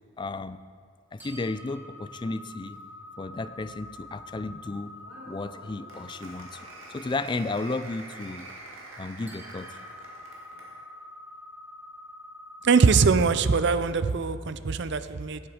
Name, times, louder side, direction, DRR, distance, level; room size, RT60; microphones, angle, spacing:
voice 1, 0.2-0.6 1.1-2.8 3.2-4.9 5.3-6.6 6.9-8.5 9.0-9.8, left 3 dB, 25° left, 13 dB, 0.3 m, -33 dB
sound 1, 1.2-13.8, left 2 dB, 10° right, 1.3 m, -47 dB
Applause, 5.0-10.8, right 2 dB, 85° right, 2.1 m, -46 dB
voice 2, 12.6-15.4, right 5 dB, 55° right, 13 dB, 0.5 m, -22 dB
16.5 x 7.7 x 5.0 m, 2.2 s
head